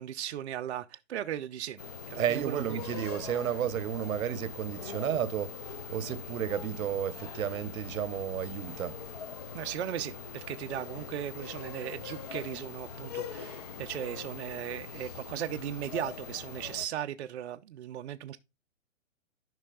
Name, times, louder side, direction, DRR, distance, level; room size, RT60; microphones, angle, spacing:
voice 1, 0.0-1.8 2.1-2.8 9.5-18.4, right 11 dB, 55° right, 0.5 m, -37 dB
sound 1, 1.8-16.9, left 5 dB, 30° left, 0.4 m, -42 dB
voice 2, 2.2-9.0, right 9 dB, 85° right, 0.9 m, -32 dB
12.5 x 5.4 x 2.2 m
hypercardioid pair, 160°, 40 cm